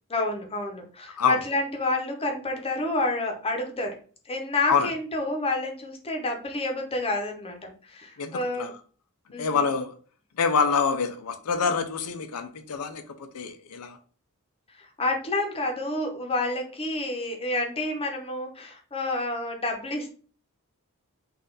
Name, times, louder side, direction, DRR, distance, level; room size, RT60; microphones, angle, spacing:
voice 1, 0.1-4.0 4.3-8.7 9.3-9.7 14.8-20.1, left 2 dB, 25° left, 0.9 m, -29 dB
voice 2, 8.2-8.7 9.4-9.9 10.4-14.0, left 5 dB, 75° left, 0.5 m, -26 dB
4.1 x 2.5 x 3.8 m
head